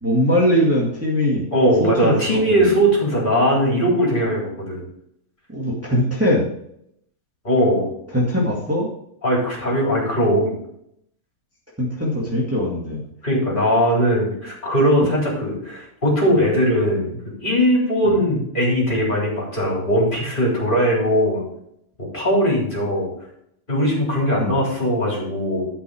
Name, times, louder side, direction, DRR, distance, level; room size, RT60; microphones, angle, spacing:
voice 1, 0.0-1.5 1.8-2.7 5.5-6.5 8.1-8.9 11.8-13.0 18.0-18.2 24.4-24.6, equal, 10° right, -5 dB, 1.9 m, -21 dB
voice 2, 1.5-4.9 7.4-7.9 9.2-10.5 13.2-17.1 17.4-21.4 22.1-23.1 23.7-25.7, equal, 30° left, -4 dB, 4.0 m, -19 dB
12.0 x 5.8 x 4.9 m, 0.74 s
omnidirectional pair, 1.6 m